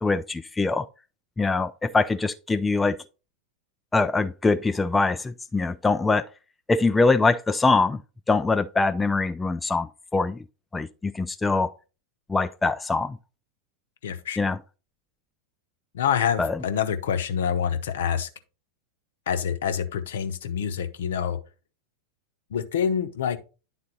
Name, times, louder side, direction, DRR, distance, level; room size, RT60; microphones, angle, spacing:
voice 1, 0.0-0.9 1.4-3.0 3.9-6.3 6.7-8.0 8.3-10.4 10.7-11.7 12.3-13.2 14.4-14.6 16.4-16.5, left 3 dB, 10° left, 0.3 m, -23 dB
voice 2, 14.0-14.5 15.9-18.3 19.3-21.4 22.5-23.4, left 8 dB, 60° left, 0.8 m, -26 dB
10.0 x 4.0 x 4.0 m
figure-of-eight pair, 90°, 0 cm